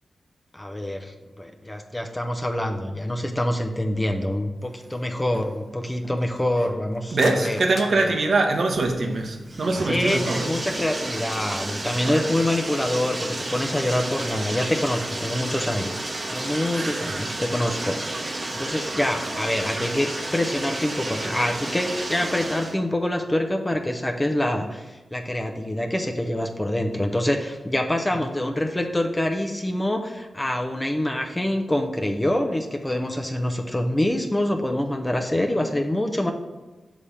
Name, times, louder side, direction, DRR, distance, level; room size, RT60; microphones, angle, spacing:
voice 1, 0.5-7.6 7.9-8.1 9.8-15.9 16.3-18.2 18.5-36.3, left 1 dB, 15° left, 3 dB, 0.7 m, -26 dB
sound 1, 6.8-8.9, left 4 dB, 70° left, 0.5 m, -39 dB
voice 2, 7.1-10.5 12.0-12.2 16.7-17.2 18.5-18.7, right 2 dB, 60° right, 4 dB, 1.0 m, -24 dB
Bathtub (filling or washing), 8.7-22.8, right 2 dB, 40° right, 1.0 m, -31 dB
7.1 x 3.4 x 5.5 m, 1.2 s
cardioid pair, 60°, 0 cm